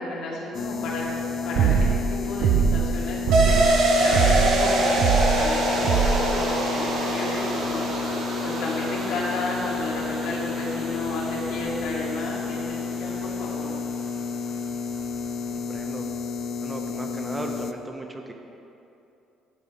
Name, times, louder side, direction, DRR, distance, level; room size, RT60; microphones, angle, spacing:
voice 1, 0.0-3.6 4.0-7.9 8.4-13.7, left 2 dB, 70° left, -4 dB, 1.9 m, -32 dB
sound 1, 0.5-17.7, left 5 dB, 40° left, 0.4 m, -31 dB
sound 2, 1.5-2.1 2.4-2.9 3.3-3.8 4.1-4.6 5.0-5.4 5.8-6.3, right 7 dB, 55° right, 0.4 m, -21 dB
sound 3, 3.3-12.7 13.0-13.1, right 1 dB, 90° right, 1.7 m, -25 dB
voice 2, 15.5-16.1 16.6-18.3, right 1 dB, 10° right, 3 dB, 0.6 m, -36 dB
11.0 x 5.1 x 5.0 m, 2.8 s
cardioid pair, 165°, 0 cm